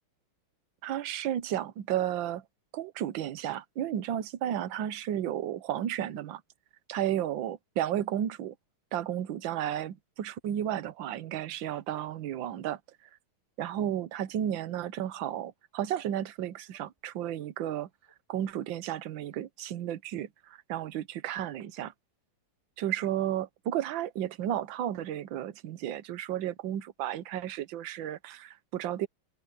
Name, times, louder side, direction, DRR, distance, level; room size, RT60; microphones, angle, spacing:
voice 1, 0.8-2.4 2.7-6.4 6.9-8.5 8.9-12.8 13.6-17.9 18.3-21.9 22.8-29.1, right 11 dB, 70° right, 1.6 m, -33 dB
sound 1, 15.1-15.3 15.9-16.2 16.6-17.0 17.3-17.5 18.0-18.1 18.7-18.8 19.3-19.5, right 1 dB, 10° right, 6.3 m, -67 dB
omnidirectional pair, 2.3 m